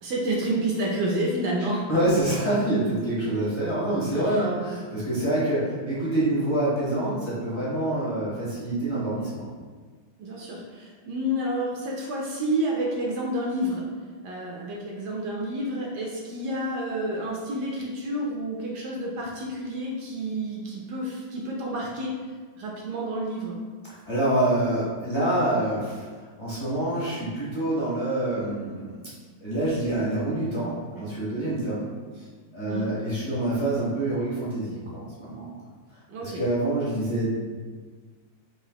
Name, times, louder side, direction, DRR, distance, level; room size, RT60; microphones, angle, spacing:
voice 1, 0.0-1.8 4.2-4.4 10.2-13.8 14.2-22.1 22.6-23.6 32.7-32.9 36.1-36.4, right 1 dB, 70° right, -2 dB, 1.1 m, -29 dB
voice 2, 1.6-9.5 24.1-26.1 26.4-29.0 29.4-31.9 32.2-32.3 32.5-35.6 36.2-37.4, right 1 dB, 20° left, -10 dB, 0.7 m, -26 dB
4.9 x 2.6 x 2.9 m, 1.5 s
omnidirectional pair, 2.0 m